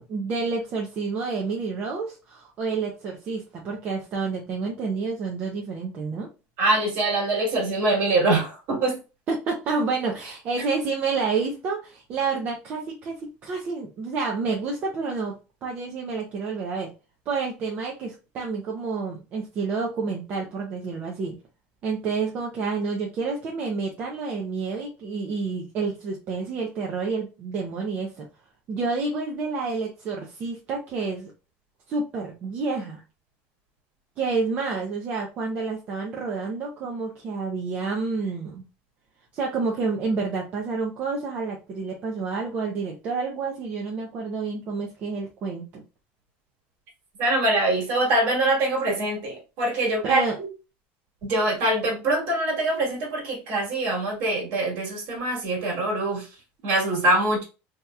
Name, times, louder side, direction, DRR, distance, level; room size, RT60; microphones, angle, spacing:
voice 1, 0.0-6.3 9.3-15.3 15.6-16.9 17.3-21.3 21.8-28.3 28.7-31.3 31.9-33.0 34.2-38.6 39.3-45.8 50.0-50.3, right 4 dB, 35° right, 0.6 m, -29 dB
voice 2, 6.6-9.0 47.2-50.2 51.2-56.3 56.6-57.4, right 2 dB, 55° right, 1.6 m, -24 dB
3.3 x 2.8 x 2.3 m
cardioid pair, 165°, 5 cm